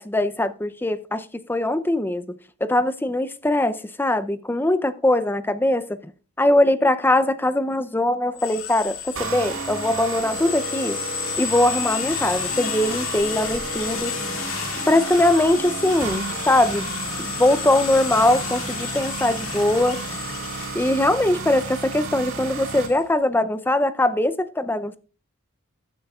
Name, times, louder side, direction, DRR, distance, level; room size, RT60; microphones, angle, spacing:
voice 1, 0.0-2.4 2.6-6.0 6.4-11.0 11.4-14.1 14.9-16.9 17.2-20.0 20.7-25.0, left 1 dB, 10° left, 0.5 m, -21 dB
sound 1, 8.4-23.0, left 8 dB, 75° left, 2.0 m, -32 dB
sound 2, 9.2-22.9, right 4 dB, 80° right, 3.6 m, -33 dB
14.5 x 10.5 x 2.4 m
head